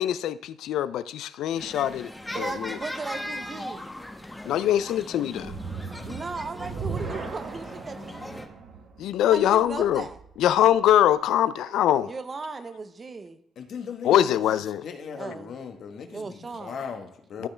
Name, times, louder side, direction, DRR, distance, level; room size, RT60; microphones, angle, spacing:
voice 1, 0.0-2.1 2.4-2.8 4.5-5.5 9.0-10.0 10.4-12.1 14.0-14.8 17.4-17.5, left 11 dB, 85° left, 0.3 m, -23 dB
sound 1, 1.6-8.5, left 1 dB, 10° left, 0.9 m, -38 dB
voice 2, 2.3-3.9 6.1-8.4 9.3-10.2 12.0-13.4 15.2-15.6 16.1-16.8, right 4 dB, 35° right, 0.7 m, -37 dB
sound 2, 5.4-10.6, right 5 dB, 65° right, 1.1 m, -38 dB
voice 3, 5.9-6.3 6.6-6.8 13.6-17.5, left 6 dB, 65° left, 1.1 m, -39 dB
12.5 x 4.3 x 3.3 m
cardioid pair, 90°, 0 cm